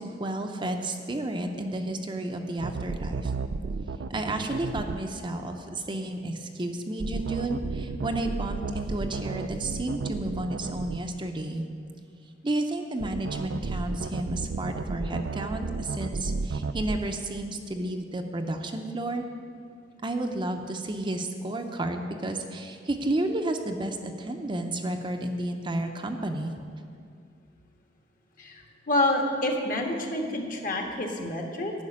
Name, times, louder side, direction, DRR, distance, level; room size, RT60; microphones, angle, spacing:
voice 1, 0.0-3.3 4.1-11.7 12.4-19.3 20.0-26.5, right 1 dB, 25° right, 4 dB, 0.6 m, -31 dB
sound 1, 2.6-5.0 7.0-11.0 13.0-17.0, right 4 dB, 70° right, 0.4 m, -32 dB
voice 2, 28.4-31.7, left 1 dB, 50° left, 2 dB, 1.4 m, -28 dB
11.0 x 6.0 x 8.5 m, 2.3 s
head